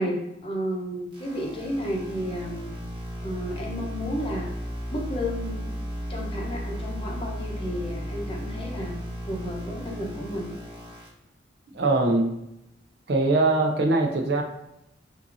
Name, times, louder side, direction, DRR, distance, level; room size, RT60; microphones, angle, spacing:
voice 1, 0.0-2.7 3.2-4.5 4.9-5.7 6.1-9.0 9.3-10.5, equal, 30° left, -1 dB, 0.8 m, -32 dB
sound 1, 1.1-11.1, equal, 25° right, 1.1 m, -35 dB
voice 2, 11.7-12.3 13.1-14.4, right 2 dB, 60° right, 3 dB, 0.5 m, -22 dB
5.7 x 2.7 x 2.6 m, 0.84 s
head